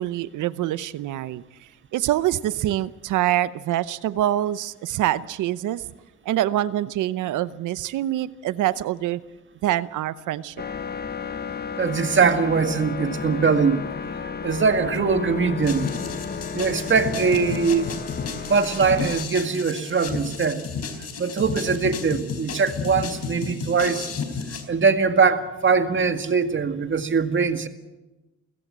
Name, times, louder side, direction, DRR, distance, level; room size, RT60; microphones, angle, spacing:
voice 1, 0.0-1.4 1.9-5.8 6.2-9.2 9.6-10.5, right 13 dB, 85° right, 0.9 m, -25 dB
sound 1, 10.6-19.2, left 6 dB, 30° left, 1.1 m, -32 dB
voice 2, 11.8-13.9 14.4-15.9 16.5-17.9 18.5-20.7 21.2-24.1 24.5-27.7, right 5 dB, 40° right, 1.9 m, -22 dB
sound 2, 15.6-24.6, left 5 dB, 55° left, 3.9 m, -32 dB
30.0 x 16.0 x 7.5 m
cardioid pair, 90°, 30 cm